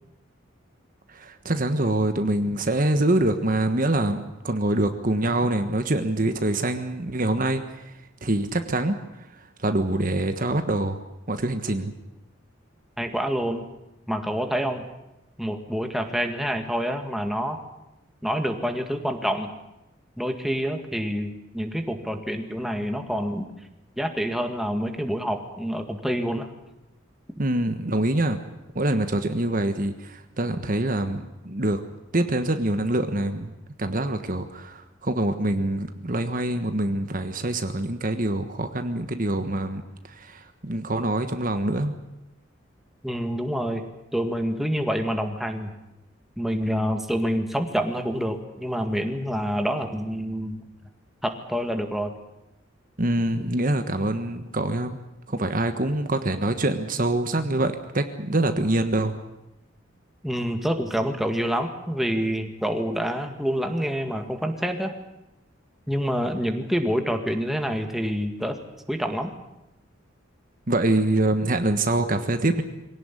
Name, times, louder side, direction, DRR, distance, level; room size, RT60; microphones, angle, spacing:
voice 1, 1.1-7.6 8.2-9.0 9.6-11.0 11.3-11.9 27.4-28.4 28.7-31.8 32.1-33.5 33.8-39.8 40.1-42.0 53.0-55.0 55.3-59.1 70.7-72.6, right 1 dB, 45° right, 8 dB, 1.4 m, -25 dB
voice 2, 13.0-13.6 14.1-14.8 15.4-17.6 18.2-19.5 20.2-23.5 24.0-26.5 43.0-43.8 44.1-45.7 46.4-50.6 51.2-52.1 60.2-64.9 65.9-68.6 68.9-69.3, equal, ahead, 5 dB, 2.0 m, -27 dB
23.0 x 17.5 x 9.9 m, 0.93 s
head